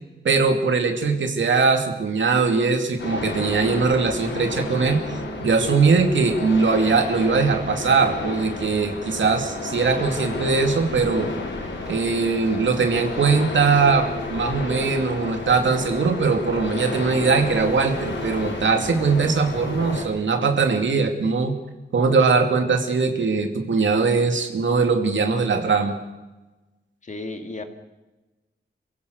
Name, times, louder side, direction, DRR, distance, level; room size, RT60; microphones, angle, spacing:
voice 1, 0.2-11.3 11.9-21.6 21.9-26.0, right 4 dB, 85° right, 5 dB, 2.7 m, -21 dB
sound 1, 3.0-20.0, left 2 dB, 85° left, 5.5 m, -31 dB
voice 2, 27.0-27.6, left 2 dB, 40° left, 6 dB, 2.2 m, -33 dB
28.5 x 16.0 x 6.6 m, 1.1 s
wide cardioid pair, 170°, 19 cm